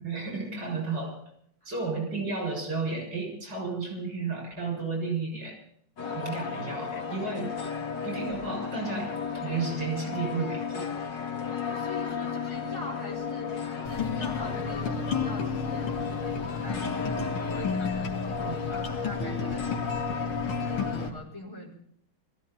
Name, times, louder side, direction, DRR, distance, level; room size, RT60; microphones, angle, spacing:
voice 1, 0.0-1.2 1.7-5.6 6.1-10.9 18.4-18.6, right 4 dB, 55° right, 1 dB, 7.4 m, -33 dB
sound 1, 6.0-21.1, left 6 dB, 55° left, 2.4 m, -34 dB
voice 2, 11.5-20.3 20.6-21.7, left 1 dB, 10° left, -3 dB, 4.7 m, -43 dB
sound 2, 13.9-21.1, left 4 dB, 85° left, 2.4 m, -33 dB
20.5 x 15.5 x 4.2 m, 0.67 s
omnidirectional pair, 2.3 m